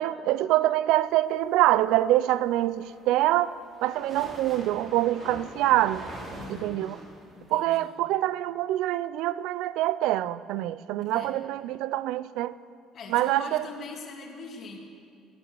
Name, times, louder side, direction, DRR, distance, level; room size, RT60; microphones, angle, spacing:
voice 1, 0.0-6.0 6.5-7.0 7.5-12.6 13.1-13.6, right 14 dB, 80° right, 0.4 m, -25 dB
sound 1, 2.6-7.7, right 1 dB, 45° right, 3.8 m, -43 dB
voice 2, 6.3-6.9 7.3-8.1 11.0-11.3 12.9-14.8, left 4 dB, 50° left, 1.9 m, -42 dB
18.0 x 7.1 x 6.8 m
cardioid pair, 95°, 0 cm